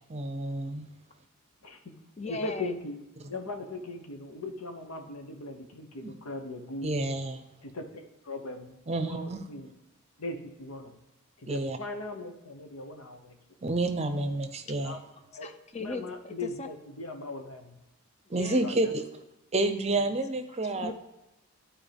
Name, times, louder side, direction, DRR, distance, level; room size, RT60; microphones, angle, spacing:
voice 1, 0.1-0.9 6.0-6.1 6.8-7.4 8.9-9.4 11.5-11.8 13.6-15.0 18.3-19.0 19.5-20.9, right 2 dB, 30° right, 8 dB, 0.6 m, -29 dB
voice 2, 1.6-1.9 2.3-6.9 7.6-9.7 10.2-11.0 11.4-13.4 14.8-15.0 15.3-15.5 15.8-17.8 18.6-18.9 20.0-20.1, left 2 dB, 85° left, 5 dB, 1.0 m, -39 dB
voice 3, 2.2-2.7 15.4-16.7 18.3-18.7 20.7-20.9, left 4 dB, 30° left, 8 dB, 0.5 m, -38 dB
11.5 x 4.4 x 3.5 m, 0.96 s
head